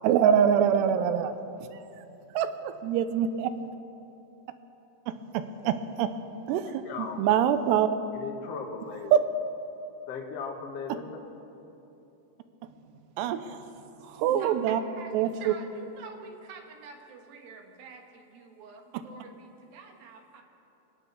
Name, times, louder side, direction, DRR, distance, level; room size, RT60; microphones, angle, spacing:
voice 1, 0.0-1.4 2.3-3.5 5.1-6.1 6.5-7.9 9.1-9.2 13.2-13.6 14.0-14.8 15.1-15.5, right 9 dB, 85° right, 10 dB, 2.7 m, -25 dB
voice 2, 6.8-7.2 8.1-9.2 10.1-11.2, left 5 dB, 65° left, 1 dB, 1.5 m, -37 dB
voice 3, 14.0-20.4, right 4 dB, 65° right, 3 dB, 2.9 m, -47 dB
24.5 x 8.6 x 6.8 m, 2.9 s
omnidirectional pair, 4.9 m